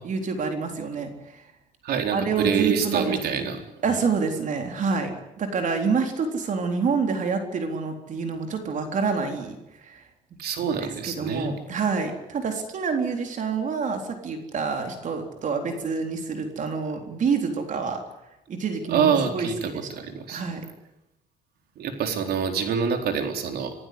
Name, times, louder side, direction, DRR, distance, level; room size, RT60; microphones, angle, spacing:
voice 1, 0.0-1.4 2.1-3.5 3.8-5.1 5.4-10.1 10.6-10.7 11.0-18.0 18.5-19.9 20.3-20.6, right 5 dB, 50° right, 5 dB, 3.8 m, -27 dB
voice 2, 1.8-3.6 10.4-11.5 18.9-20.4 21.8-23.7, right 7 dB, 70° right, 5 dB, 4.2 m, -26 dB
27.0 x 15.0 x 9.8 m, 0.90 s
cardioid pair, 110°, 17 cm